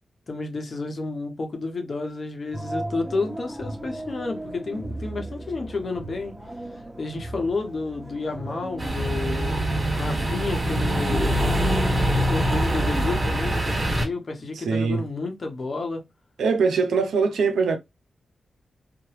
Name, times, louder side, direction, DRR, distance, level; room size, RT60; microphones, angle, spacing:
voice 1, 0.3-6.4 7.0-9.7 10.0-12.0 12.3-16.0, left 3 dB, 55° left, 0.8 m, -31 dB
sound 1, 2.5-13.0, right 1 dB, 5° right, 1.3 m, -37 dB
sound 2, 8.8-14.0, right 1 dB, 40° right, 1.5 m, -24 dB
voice 2, 14.7-15.0 16.4-17.8, right 5 dB, 85° right, 0.5 m, -22 dB
2.9 x 2.0 x 3.1 m
supercardioid pair, 40°, 0 cm